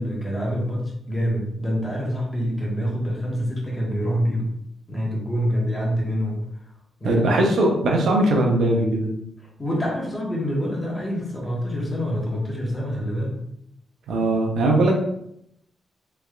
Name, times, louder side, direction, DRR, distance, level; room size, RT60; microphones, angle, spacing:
voice 1, 0.0-4.5 4.9-6.4 7.0-7.4 9.6-13.4, equal, 20° left, -3 dB, 1.2 m, -26 dB
voice 2, 7.0-9.1 14.1-14.9, right 1 dB, 80° right, 1 dB, 0.6 m, -20 dB
3.3 x 3.1 x 2.4 m, 0.75 s
cardioid pair, 75°, 0 cm